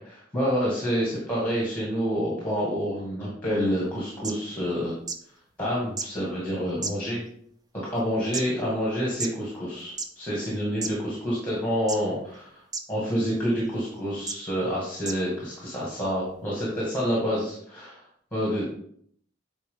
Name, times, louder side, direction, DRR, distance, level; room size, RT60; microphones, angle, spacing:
voice 1, 0.0-4.9 5.6-7.2 7.9-12.6 12.9-18.0 18.3-18.7, equal, 10° left, -6 dB, 2.1 m, -28 dB
sound 1, 3.9-4.0 4.2-4.3 5.1-5.2 6.0-6.1 6.8-7.3 8.0-8.4 9.2-9.3 9.9-10.1 10.8-10.9 11.9-12.2 12.7-12.8 13.6-13.7 14.3-14.4 15.0-15.2 16.0-16.1, right 4 dB, 20° right, 0.5 m, -31 dB
8.9 x 4.3 x 3.8 m, 0.65 s
head